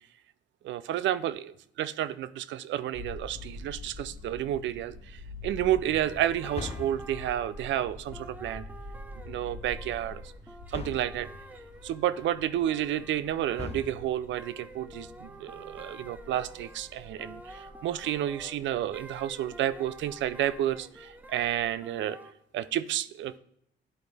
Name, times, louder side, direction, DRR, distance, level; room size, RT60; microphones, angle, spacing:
voice 1, 0.6-8.6 9.3-10.2 10.7-11.3 11.8-22.2 22.5-23.4, right 12 dB, 70° right, 16 dB, 0.4 m, -31 dB
sound 1, 2.9-21.7, left 2 dB, 35° right, 2.4 m, -47 dB
sound 2, 3.3-4.0 6.5-7.4 10.7-11.3 13.6-14.4, left 5 dB, 30° left, 0.6 m, -41 dB
sound 3, 5.6-22.3, right 1 dB, 10° right, 0.6 m, -49 dB
10.0 x 4.0 x 3.3 m, 0.72 s
cardioid pair, 90°, 20 cm